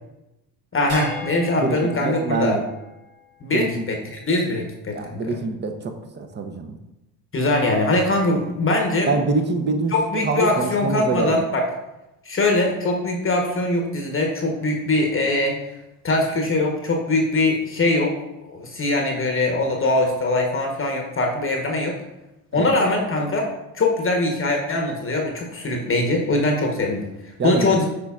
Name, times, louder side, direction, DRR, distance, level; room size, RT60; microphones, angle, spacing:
voice 1, 0.7-2.6 3.4-5.4 7.3-9.1 9.9-11.6 12.2-15.6 16.0-18.1 18.5-22.0 22.5-23.5 23.7-27.9, left 2 dB, 25° left, 1 dB, 1.1 m, -22 dB
sound 1, 0.9-3.5, left 2 dB, 90° right, 1.8 m, -38 dB
voice 2, 1.6-2.6 3.5-3.8 4.9-6.8 9.1-11.4 22.5-22.7 27.4-27.8, right 3 dB, 20° right, 6 dB, 0.8 m, -25 dB
8.2 x 4.9 x 2.4 m, 0.95 s
hypercardioid pair, 70°, 49 cm